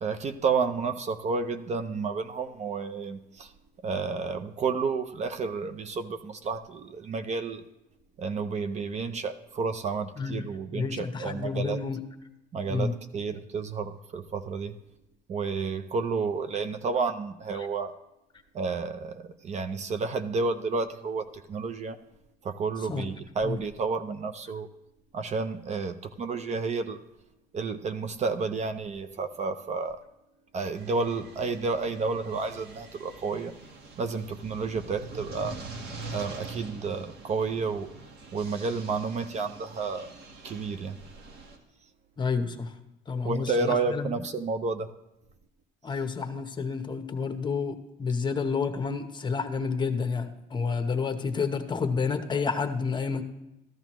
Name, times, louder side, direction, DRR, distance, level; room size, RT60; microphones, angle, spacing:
voice 1, 0.0-3.5 3.8-7.6 8.2-11.8 12.5-14.8 15.3-17.9 18.5-22.0 22.4-24.7 25.1-27.0 27.5-30.0 30.5-33.5 34.0-35.6 36.1-37.9 38.3-40.1 40.4-41.0 43.2-44.9, right 4 dB, 40° right, 10 dB, 0.6 m, -31 dB
voice 2, 10.7-12.0 12.7-12.9 17.5-17.7 22.9-23.1 23.4-23.6 42.2-42.8 43.1-44.2 45.8-53.2, left 5 dB, 25° left, 7 dB, 0.9 m, -30 dB
sound 1, 30.7-41.6, right 3 dB, 75° right, 1.6 m, -44 dB
14.5 x 12.0 x 3.1 m, 0.91 s
cardioid pair, 110°, 17 cm